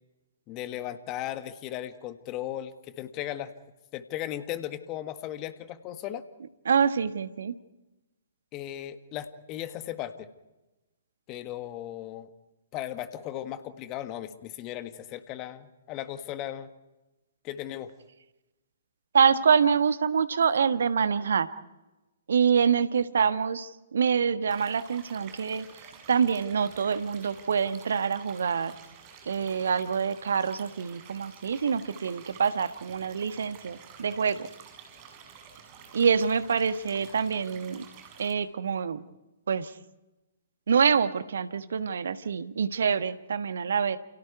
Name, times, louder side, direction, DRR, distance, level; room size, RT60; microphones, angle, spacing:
voice 1, 0.5-3.5 3.9-6.2 8.5-10.3 11.3-12.3 12.7-16.7 17.4-17.9, left 12 dB, 25° left, 10 dB, 1.7 m, -36 dB
voice 2, 6.7-7.5 19.1-21.5 22.3-25.6 26.1-28.8 29.3-34.5 35.9-37.9 38.2-39.0 39.5-39.7 40.7-44.0, right 6 dB, 60° right, 11 dB, 1.4 m, -26 dB
sound 1, 24.5-38.3, right 7 dB, 30° right, 6.2 m, -50 dB
29.5 x 29.5 x 4.7 m, 1.0 s
figure-of-eight pair, 120°, 0 cm